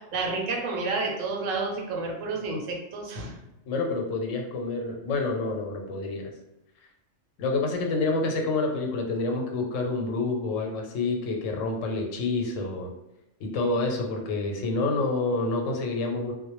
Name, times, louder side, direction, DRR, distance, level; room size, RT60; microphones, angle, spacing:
voice 1, 0.1-3.3, right 3 dB, 90° right, 0 dB, 1.0 m, -30 dB
voice 2, 3.7-6.3 7.4-12.9 13.4-16.3, left 3 dB, 90° left, 2 dB, 1.0 m, -28 dB
2.2 x 2.0 x 2.9 m, 0.93 s
omnidirectional pair, 1.3 m